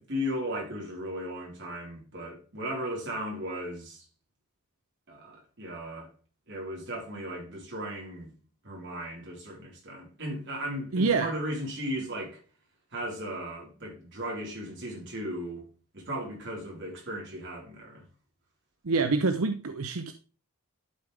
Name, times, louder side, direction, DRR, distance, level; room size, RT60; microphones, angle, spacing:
voice 1, 0.0-4.0 5.1-6.1 6.5-8.3 8.6-12.4 12.9-15.6 15.9-18.1, equal, 55° right, 4.0 m, -36 dB
voice 2, 10.9-11.3 18.8-20.1, right 4 dB, 75° right, 0.7 m, -26 dB
11.5 x 5.2 x 3.3 m
head